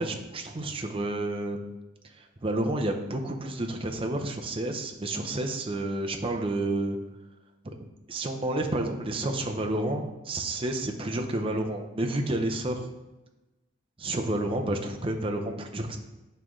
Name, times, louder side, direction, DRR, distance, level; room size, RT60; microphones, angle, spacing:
voice 1, 0.0-1.8 2.1-7.0 7.6-7.7 8.1-12.9 14.0-16.0, right 1 dB, 30° right, 3 dB, 0.6 m, -30 dB
9.0 x 3.1 x 3.7 m, 1.0 s
head